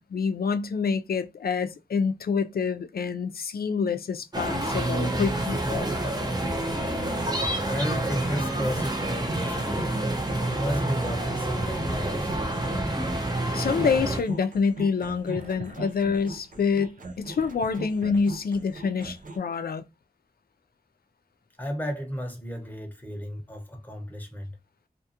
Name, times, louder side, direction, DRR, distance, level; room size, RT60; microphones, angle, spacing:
voice 1, 0.0-5.9 13.5-19.8, left 5 dB, 80° left, 0.4 m, -27 dB
sound 1, 4.3-14.2, right 1 dB, 25° right, 0.8 m, -28 dB
voice 2, 7.7-10.2 10.5-12.3 21.6-24.6, equal, 10° left, 0.9 m, -33 dB
sound 2, 8.8-19.4, right 2 dB, 60° right, 0.6 m, -39 dB
2.5 x 2.3 x 2.7 m
wide cardioid pair, 55°, 16 cm